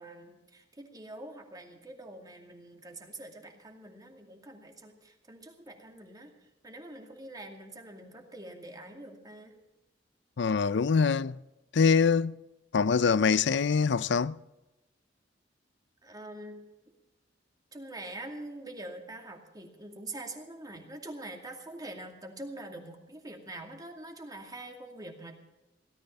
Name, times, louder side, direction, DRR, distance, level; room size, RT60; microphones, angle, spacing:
voice 1, 0.0-9.5 16.0-16.6 17.7-25.4, right 1 dB, 20° right, 2.4 m, -45 dB
voice 2, 10.4-11.4 11.7-12.4 12.7-14.4, left 5 dB, 65° left, 0.5 m, -24 dB
17.5 x 13.0 x 5.7 m
head